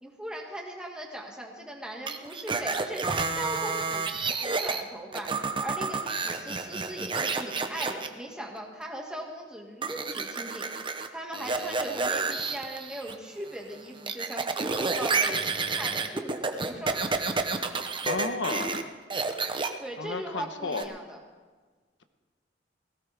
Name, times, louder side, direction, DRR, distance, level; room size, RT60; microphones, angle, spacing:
voice 1, 0.0-10.7 11.1-17.0 19.8-21.2, right 1 dB, 5° right, 0 dB, 2.0 m, -39 dB
sound 1, 2.1-4.8 5.1-8.1 9.8-11.1 11.3-13.1 13.5-18.8 19.1-19.7 20.7-20.8, right 4 dB, 25° right, 0.8 m, -30 dB
voice 2, 18.0-18.9 20.0-20.9, left 3 dB, 80° left, 8 dB, 1.1 m, -32 dB
18.0 x 16.5 x 3.5 m, 1.4 s
head